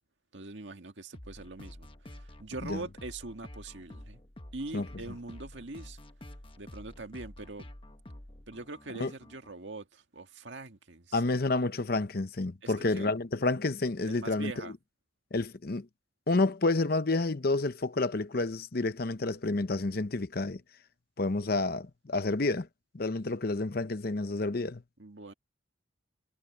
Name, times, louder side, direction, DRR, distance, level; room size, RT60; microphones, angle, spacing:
voice 1, 0.3-4.2 4.5-6.0 6.6-7.7 8.5-11.2 12.6-13.1 14.1-14.7 25.0-25.3, right 2 dB, 65° right, 1.9 m, -43 dB
sound 1, 1.1-9.5, left 1 dB, 25° left, 1.1 m, -49 dB
voice 2, 11.1-14.7 15.3-15.9 16.3-20.6 21.2-22.7 22.9-24.8, left 2 dB, 50° left, 0.8 m, -29 dB
head